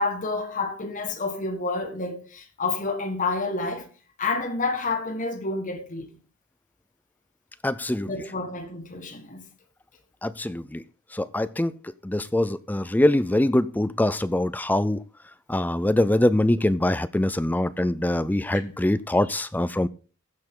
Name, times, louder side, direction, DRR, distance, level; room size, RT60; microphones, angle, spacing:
voice 1, 0.0-3.9 4.2-6.1 8.0-9.5 18.5-18.6, left 3 dB, 40° left, 1.7 m, -29 dB
voice 2, 7.6-8.1 10.2-10.8 11.1-11.7 12.0-15.0 15.5-19.9, left 1 dB, 10° left, 0.4 m, -23 dB
15.5 x 6.6 x 3.8 m
head